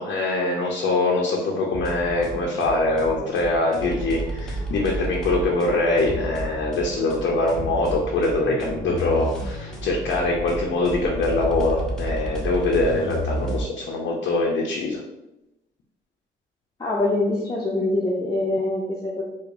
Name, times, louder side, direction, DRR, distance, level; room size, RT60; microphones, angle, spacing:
voice 1, 0.0-15.0, left 2 dB, 70° left, -1 dB, 0.6 m, -23 dB
sound 1, 1.7-13.6, right 1 dB, 5° left, 0.9 m, -31 dB
voice 2, 16.8-19.2, left 2 dB, 20° left, -5 dB, 0.6 m, -24 dB
4.7 x 2.1 x 2.6 m, 0.94 s
cardioid pair, 90°, 20 cm